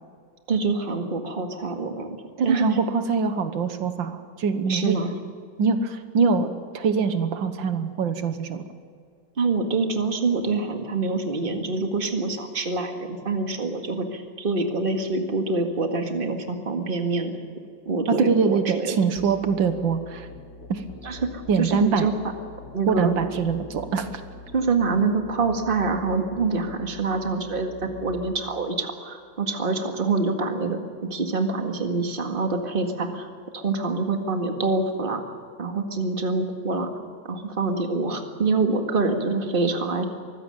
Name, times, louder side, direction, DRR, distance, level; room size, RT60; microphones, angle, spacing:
voice 1, 0.5-2.2 2.4-2.6 4.7-5.1 9.4-17.3 17.9-19.0 21.0-22.1 22.7-23.1 24.5-30.8 31.1-33.3 33.5-35.2 35.6-36.9 37.3-40.1, right 3 dB, 30° right, 5 dB, 2.0 m, -25 dB
voice 2, 2.4-5.0 5.6-6.5 6.7-8.7 18.1-20.3 20.7-20.8 21.5-22.1 22.9-24.1, right 5 dB, 85° right, 9 dB, 1.9 m, -23 dB
Musical instrument, 19.2-28.4, left 2 dB, 45° left, 2.4 m, -43 dB
23.5 x 15.5 x 9.1 m, 2.2 s
omnidirectional pair, 2.0 m